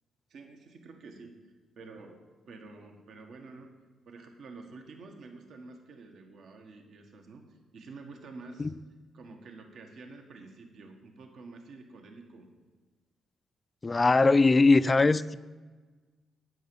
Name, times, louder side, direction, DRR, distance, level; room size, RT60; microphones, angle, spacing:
voice 1, 0.3-1.3 1.7-3.7 4.0-8.7 9.1-12.5, right 3 dB, 65° right, 1.6 m, -49 dB
voice 2, 13.8-15.3, left 3 dB, 25° left, 0.4 m, -21 dB
9.3 x 9.1 x 7.1 m
cardioid pair, 115°, 0 cm